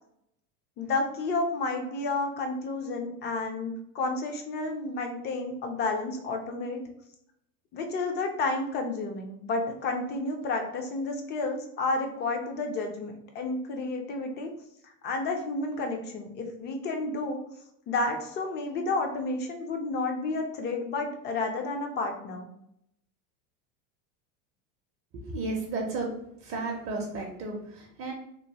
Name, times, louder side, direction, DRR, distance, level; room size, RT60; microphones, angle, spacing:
voice 1, 0.8-6.8 7.7-14.5 14.8-17.4 17.9-22.5, left 3 dB, 30° left, 4 dB, 0.4 m, -31 dB
voice 2, 25.1-26.1 26.4-28.1, right 3 dB, 40° right, 1 dB, 0.5 m, -33 dB
2.9 x 2.0 x 2.8 m, 0.75 s
supercardioid pair, 130°, 36 cm